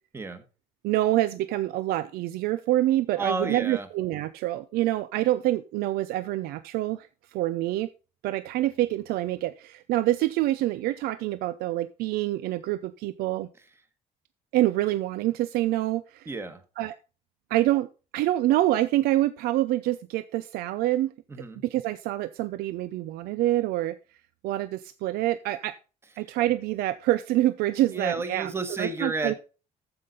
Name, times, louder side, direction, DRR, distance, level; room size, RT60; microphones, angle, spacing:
voice 1, 0.8-7.9 8.2-13.5 14.5-16.3 16.8-16.9 17.5-17.9 18.1-21.1 21.6-24.0 24.4-25.7 26.2-28.5 28.8-29.3, right 15 dB, 90° right, 13 dB, 0.6 m, -26 dB
voice 2, 3.2-3.9 16.2-16.6 21.3-21.6 26.3-26.4 27.9-29.3, right 3 dB, 15° right, 9 dB, 1.4 m, -31 dB
14.5 x 5.7 x 3.9 m, 0.33 s
cardioid pair, 170°, 15 cm